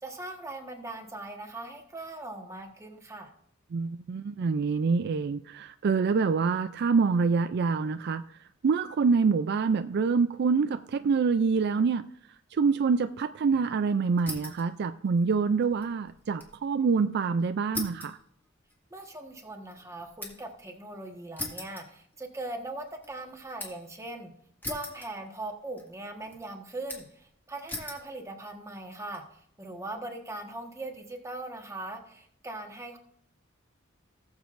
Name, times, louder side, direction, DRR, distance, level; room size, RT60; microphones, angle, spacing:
voice 1, 0.0-3.3 18.9-24.3 24.7-33.0, right 2 dB, 15° right, 3 dB, 1.3 m, -40 dB
voice 2, 3.7-8.2 8.6-12.1 12.5-18.2, right 5 dB, 55° right, 11 dB, 0.4 m, -26 dB
sound 1, 14.2-14.7 15.0-16.6 16.9-17.0 17.7-20.6 21.4-22.5 22.9-23.9 24.6-25.5 25.8-26.4 26.9-27.2 27.7-28.1 28.7-29.2, left 2 dB, 10° left, 1.9 m, -40 dB
18.5 x 7.3 x 2.5 m, 0.68 s
head